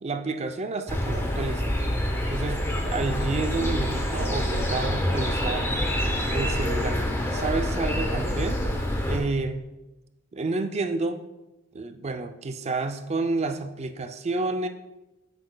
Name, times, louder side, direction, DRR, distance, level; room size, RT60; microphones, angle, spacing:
voice 1, 0.0-1.8 2.3-5.8 6.3-7.0 7.3-8.6 9.0-9.6 10.3-11.3 11.7-14.7, right 3 dB, 30° right, 7 dB, 0.4 m, -30 dB
sound 1, 0.9-9.2, equal, 10° left, 0.7 m, -26 dB
8.4 x 6.5 x 2.2 m, 1.0 s
head